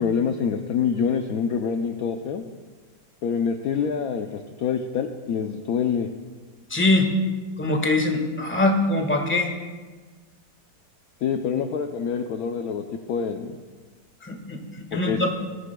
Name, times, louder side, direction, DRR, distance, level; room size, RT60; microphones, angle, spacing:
voice 1, 0.0-2.4 3.2-6.1 11.2-13.6 14.9-15.3, left 6 dB, 65° left, 5 dB, 1.0 m, -26 dB
voice 2, 6.7-7.1 7.6-9.5 14.2-15.3, left 2 dB, 5° left, 2 dB, 1.3 m, -23 dB
21.0 x 14.0 x 2.3 m, 1.4 s
omnidirectional pair, 2.0 m